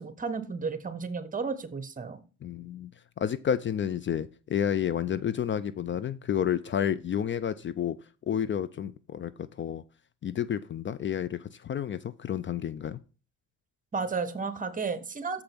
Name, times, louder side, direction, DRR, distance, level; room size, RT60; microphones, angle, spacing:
voice 1, 0.0-2.2 13.9-15.4, right 4 dB, 25° right, 12 dB, 1.2 m, -33 dB
voice 2, 2.4-2.9 3.2-8.0 8.3-9.8 10.2-13.0, left 9 dB, 40° left, 16 dB, 0.4 m, -30 dB
7.2 x 5.1 x 6.0 m, 0.36 s
cardioid pair, 90°, 30 cm